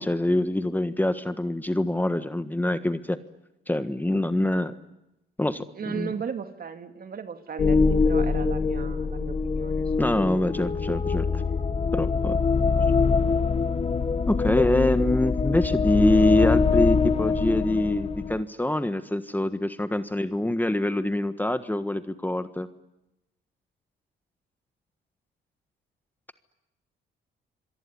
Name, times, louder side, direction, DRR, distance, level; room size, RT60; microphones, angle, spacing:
voice 1, 0.0-3.2 3.7-4.7 5.4-6.1 10.0-11.4 11.9-12.4 14.3-22.7, left 1 dB, 10° left, 10 dB, 1.4 m, -25 dB
voice 2, 5.8-9.9 11.2-11.4, right 6 dB, 50° right, 8 dB, 2.6 m, -36 dB
sound 1, 7.6-18.4, left 4 dB, 30° left, 1.2 m, -24 dB
27.0 x 23.0 x 9.7 m, 0.91 s
cardioid pair, 90°, 20 cm